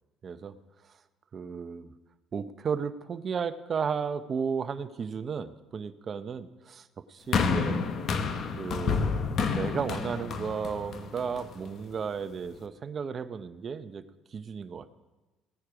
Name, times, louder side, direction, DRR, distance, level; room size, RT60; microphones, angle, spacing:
voice 1, 0.2-0.6 1.3-1.9 2.3-7.8 8.6-9.0 9.5-14.0 14.3-14.9, right 6 dB, 45° right, 11 dB, 0.8 m, -34 dB
sound 1, 7.3-11.7 12.5-12.6, left 5 dB, 55° left, 1.1 m, -29 dB
17.0 x 9.9 x 4.8 m, 1.2 s
supercardioid pair, 70°, 0 cm